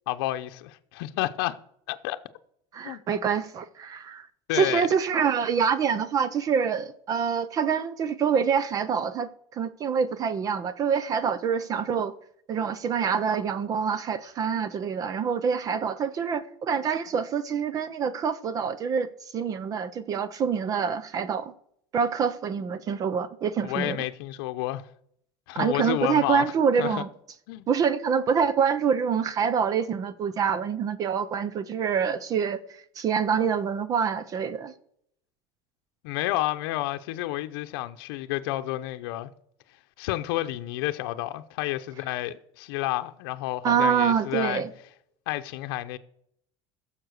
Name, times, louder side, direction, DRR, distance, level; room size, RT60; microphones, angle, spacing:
voice 1, 0.1-1.6 1.9-2.2 2.8-3.0 4.5-4.9 23.6-24.8 25.5-26.5 26.8-27.0 27.5-27.7 36.0-39.3 40.0-44.6 45.3-46.0, left 16 dB, 85° left, 0.7 m, -30 dB
voice 2, 2.7-4.3 4.5-12.1 12.5-19.1 19.3-21.5 21.9-24.0 25.6-27.1 27.7-34.7 43.6-44.7, right 6 dB, 30° right, 0.6 m, -26 dB
15.5 x 7.3 x 6.5 m
cardioid pair, 165°, 12 cm